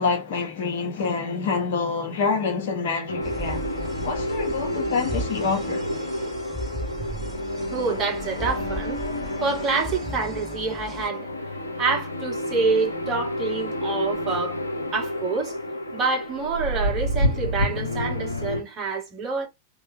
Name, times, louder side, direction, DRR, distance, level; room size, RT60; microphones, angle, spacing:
voice 1, 0.0-3.7 4.0-5.8, left 4 dB, 60° left, 1.1 m, -26 dB
saying good bye before battle music for war game in vr, 3.1-18.6, left 1 dB, 85° left, 0.5 m, -29 dB
sound 1, 3.2-11.1, right 2 dB, 5° right, 2.4 m, -36 dB
voice 2, 7.7-9.0 9.4-11.3 11.8-14.6 14.9-15.6 15.9-19.5, right 4 dB, 30° right, 1.4 m, -27 dB
3.4 x 2.8 x 2.7 m
figure-of-eight pair, 90°, 0 cm